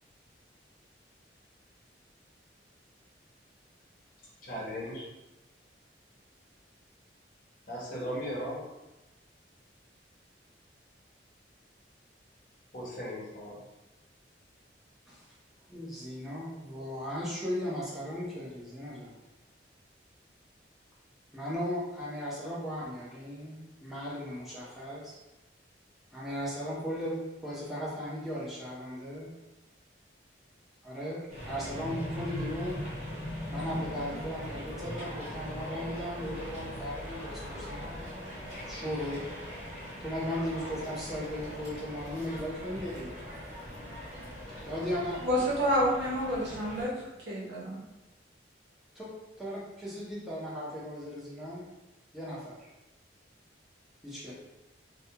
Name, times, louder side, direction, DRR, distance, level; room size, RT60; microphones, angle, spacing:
voice 1, 4.4-5.1 7.7-8.6 12.7-13.6, equal, 50° left, -6 dB, 0.8 m, -37 dB
voice 2, 15.7-19.1 21.3-25.2 26.1-29.3 30.8-32.8 33.5-38.0 38.7-39.3 40.0-43.1 44.6-45.2 48.9-49.1 49.4-51.6 52.1-52.7 54.0-54.3, equal, ahead, -8 dB, 0.6 m, -37 dB
sound 1, 31.3-46.9, left 1 dB, 35° right, 0.9 m, -40 dB
voice 3, 45.2-46.9 47.3-47.8, equal, 75° right, -5 dB, 0.8 m, -28 dB
2.3 x 2.2 x 2.8 m, 1.0 s
head